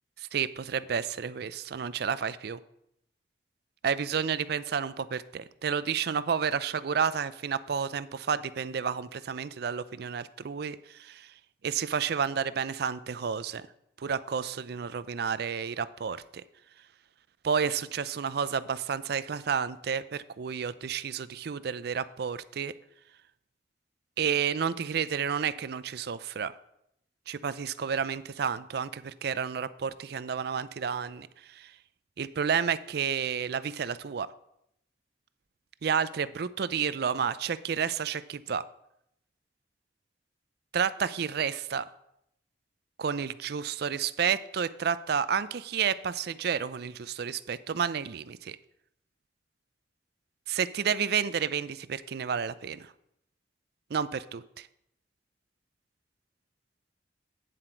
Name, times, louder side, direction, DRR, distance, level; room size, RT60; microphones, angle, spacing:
voice 1, 0.3-2.6 3.8-11.3 11.6-13.6 14.0-16.2 17.4-22.7 24.2-26.5 27.3-31.3 31.6-31.7 32.2-34.3 35.8-38.6 40.7-41.8 43.0-48.6 50.5-52.9 53.9-54.7, right 7 dB, 60° right, 16 dB, 0.4 m, -31 dB
9.3 x 7.7 x 4.5 m, 0.77 s
head